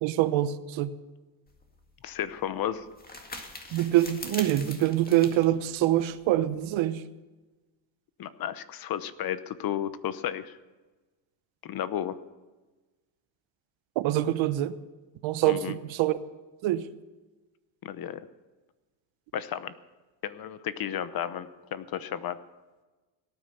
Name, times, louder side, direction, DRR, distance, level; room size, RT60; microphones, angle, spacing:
voice 1, 0.0-0.9 3.7-7.0 14.0-14.7 15.2-16.2 16.6-16.8, right 13 dB, 70° right, 1.0 m, -25 dB
sound 1, 1.5-6.7, left 2 dB, 20° left, 2.0 m, -44 dB
voice 2, 2.0-2.8 8.2-10.6 11.6-12.2 15.4-15.8 17.8-18.2 19.3-19.7 20.2-22.4, left 10 dB, 50° left, 0.9 m, -33 dB
17.5 x 9.6 x 6.8 m
cardioid pair, 125°, 47 cm